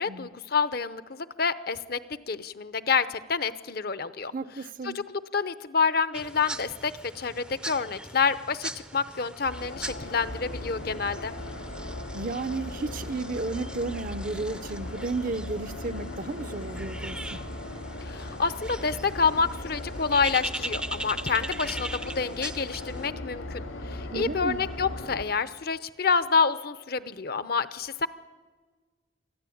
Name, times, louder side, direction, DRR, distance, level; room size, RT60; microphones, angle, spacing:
voice 1, 0.0-4.3 4.8-11.3 18.0-23.6 23.9-28.1, left 5 dB, 50° left, 13 dB, 0.7 m, -28 dB
voice 2, 4.3-5.0 12.1-17.5 24.1-24.6, right 3 dB, 45° right, 13 dB, 0.7 m, -33 dB
sound 1, 6.1-23.1, right 1 dB, 5° right, 0.6 m, -40 dB
sound 2, 9.4-25.2, left 1 dB, 90° left, 1.9 m, -38 dB
24.0 x 14.5 x 8.6 m, 1.4 s
head